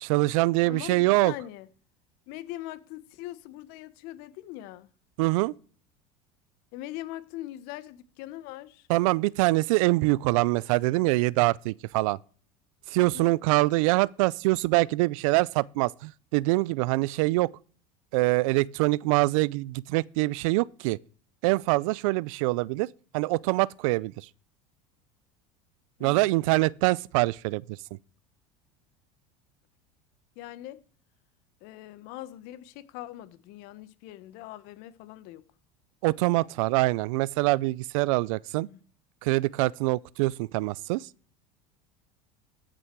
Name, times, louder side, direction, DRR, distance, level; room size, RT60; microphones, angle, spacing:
voice 1, 0.0-1.3 5.2-5.5 8.9-12.2 12.9-17.5 18.1-21.0 21.4-24.3 26.0-27.8 36.0-38.7 39.2-41.1, right 21 dB, 75° right, 0.5 m, -24 dB
voice 2, 0.6-1.7 2.3-4.9 6.7-8.9 12.9-13.3 26.0-26.5 30.4-30.8 31.6-35.4 38.6-38.8, left 14 dB, 65° left, 1.1 m, -41 dB
14.5 x 6.2 x 4.6 m
supercardioid pair, 110°, 17 cm